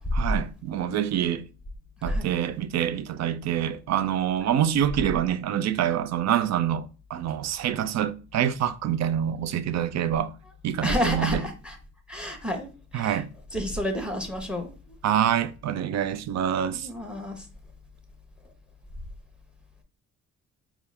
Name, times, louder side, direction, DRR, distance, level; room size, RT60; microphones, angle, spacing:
voice 1, 0.2-1.4 2.0-10.3 10.6-11.4 12.9-13.3 15.0-16.9, right 10 dB, 60° right, 0.5 m, -26 dB
voice 2, 10.8-11.8 12.1-13.2 13.5-15.0 16.7-17.5, equal, 5° right, 1.0 m, -30 dB
4.2 x 2.4 x 3.3 m
cardioid pair, 90°, 30 cm